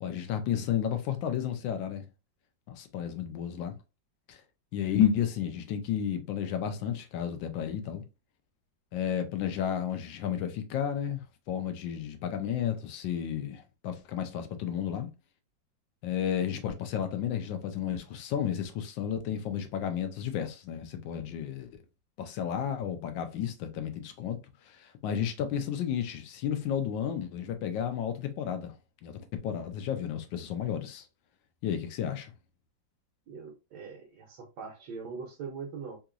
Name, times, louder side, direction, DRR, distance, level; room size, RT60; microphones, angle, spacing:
voice 1, 0.0-2.0 2.7-3.8 4.3-4.4 4.7-8.0 8.9-15.1 16.0-21.8 22.2-28.8 29.0-31.1 31.6-32.3, left 9 dB, 80° left, 1.3 m, -32 dB
voice 2, 33.3-36.0, right 5 dB, 70° right, 1.2 m, -41 dB
3.6 x 2.9 x 2.4 m
omnidirectional pair, 2.0 m